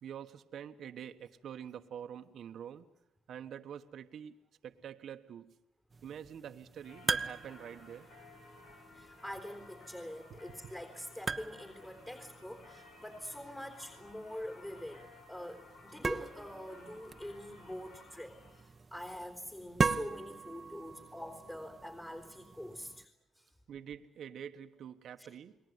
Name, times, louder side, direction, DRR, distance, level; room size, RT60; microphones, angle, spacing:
voice 1, 0.0-2.9 3.3-4.4 4.6-5.5 6.0-8.1 23.7-25.6, right 9 dB, 65° right, 7 dB, 1.3 m, -46 dB
sound 1, 5.9-23.0, right 4 dB, 30° right, 1.1 m, -41 dB
Singing / Church bell, 6.8-18.7, left 3 dB, 80° left, 7.1 m, -57 dB
voice 2, 8.9-23.1 23.4-23.5 25.2-25.3, left 1 dB, 15° left, 6 dB, 3.7 m, -45 dB
30.0 x 20.5 x 9.6 m, 0.79 s
cardioid pair, 90°, 0 cm